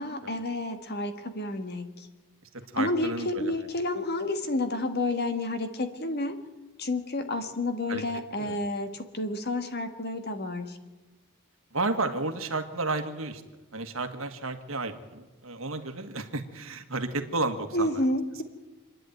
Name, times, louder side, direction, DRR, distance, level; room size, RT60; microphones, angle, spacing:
voice 1, 0.0-2.1 2.8-6.4 6.8-10.8 17.7-18.4, left 2 dB, 45° left, 8 dB, 1.7 m, -30 dB
voice 2, 2.7-3.5 7.9-8.0 8.4-8.6 11.7-13.4 13.7-18.0, right 3 dB, 65° right, 7 dB, 1.7 m, -32 dB
27.0 x 10.5 x 9.3 m, 1.2 s
head